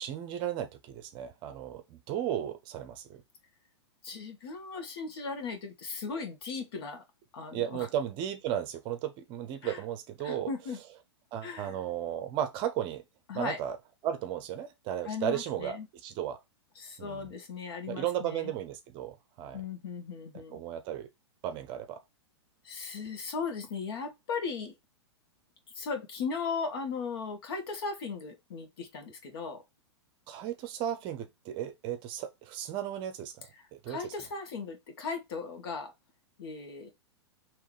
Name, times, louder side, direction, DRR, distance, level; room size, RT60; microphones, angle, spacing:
voice 1, 0.0-3.2 7.5-10.5 11.3-13.0 13.3-13.8 14.0-16.4 17.0-17.3 17.9-19.6 20.3-21.1 21.4-22.0 30.3-33.5 33.7-34.0, right 10 dB, 35° right, 0.7 m, -35 dB
voice 2, 4.0-7.0 7.3-7.9 9.6-9.8 10.2-10.8 11.4-11.8 13.3-13.6 15.0-15.9 16.7-18.5 19.5-20.6 22.6-24.7 25.7-29.6 33.5-35.9 36.4-36.9, left 5 dB, 60° left, 1.6 m, -37 dB
3.6 x 3.0 x 4.8 m
figure-of-eight pair, 105°, 14 cm